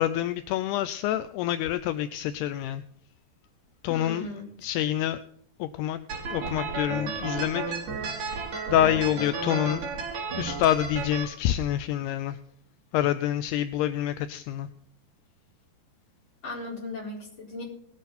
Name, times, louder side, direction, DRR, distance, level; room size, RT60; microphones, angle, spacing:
voice 1, 0.0-2.8 3.8-4.3 4.6-5.2 5.6-6.0 6.3-7.6 8.1-8.2 8.7-9.8 10.4-12.4 12.9-14.7, left 12 dB, 85° left, 11 dB, 2.6 m, -27 dB
voice 2, 3.9-4.5 16.4-17.6, left 2 dB, 30° left, -3 dB, 5.0 m, -36 dB
sound 1, 6.1-11.2, right 4 dB, 50° right, 3.7 m, -33 dB
19.5 x 8.2 x 4.2 m, 0.66 s
omnidirectional pair, 4.7 m